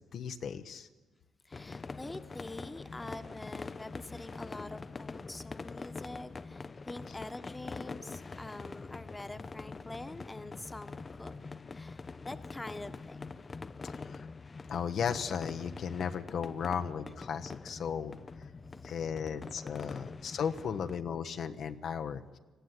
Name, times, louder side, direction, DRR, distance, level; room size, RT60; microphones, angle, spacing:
voice 1, 0.1-0.9 13.8-14.3 14.7-18.5 18.8-22.4, left 7 dB, 65° left, 8 dB, 0.9 m, -36 dB
voice 2, 1.4-11.3 11.7-13.4 13.7-13.8 18.7-19.0 20.6-20.7, left 2 dB, 15° left, 10 dB, 1.2 m, -45 dB
sound 1, 1.5-21.0, left 4 dB, 30° left, 0.6 m, -44 dB
19.5 x 14.5 x 9.6 m, 1.3 s
cardioid pair, 90°, 0 cm